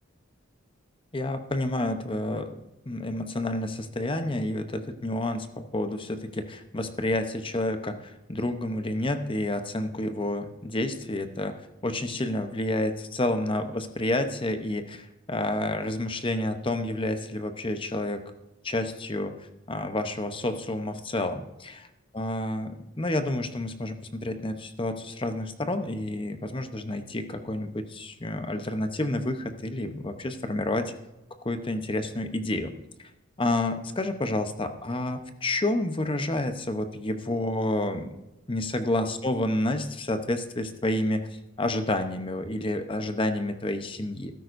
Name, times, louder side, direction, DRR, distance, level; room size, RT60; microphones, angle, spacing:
voice 1, 1.1-2.6 2.9-18.2 18.6-19.4 19.7-21.4 22.1-30.9 31.4-32.7 33.0-33.1 33.4-38.1 38.5-41.3 41.6-44.3, left 1 dB, 25° left, 8 dB, 0.8 m, -29 dB
14.0 x 12.5 x 2.6 m, 0.95 s
head